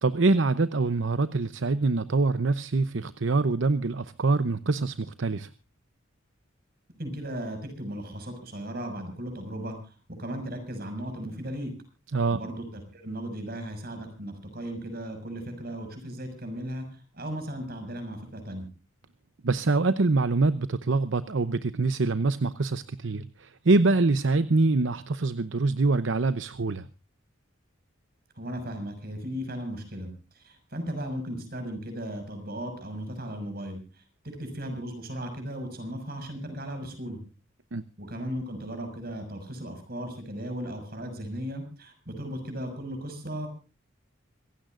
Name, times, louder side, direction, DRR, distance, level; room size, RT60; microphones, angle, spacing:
voice 1, 0.0-5.5 12.1-12.4 19.4-26.9 37.7-37.8, right 3 dB, 70° right, 14 dB, 0.7 m, -25 dB
voice 2, 7.0-11.7 12.3-18.7 28.3-37.2 38.0-43.5, equal, 50° right, 6 dB, 6.3 m, -36 dB
26.5 x 15.5 x 2.5 m, 0.32 s
head